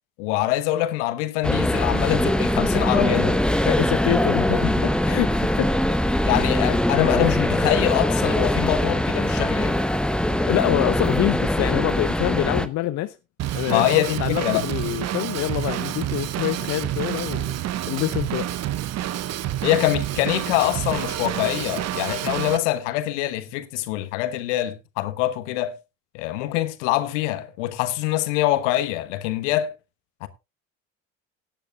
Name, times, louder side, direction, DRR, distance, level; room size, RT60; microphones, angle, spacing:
voice 1, 0.2-3.4 4.5-4.9 6.2-9.8 13.7-14.6 19.6-25.7 26.1-29.7 30.2-30.3, left 14 dB, 65° left, 1.2 m, -24 dB
sound 1, 1.4-12.7, left 1 dB, ahead, 0.9 m, -22 dB
voice 2, 3.7-4.5 4.8-5.7 10.3-13.1 13.5-17.6 17.9-18.5, left 15 dB, 45° left, 0.7 m, -26 dB
Drum kit / Drum, 13.4-22.6, right 12 dB, 40° right, 0.9 m, -28 dB
17.0 x 10.5 x 2.3 m
figure-of-eight pair, 60°, 39 cm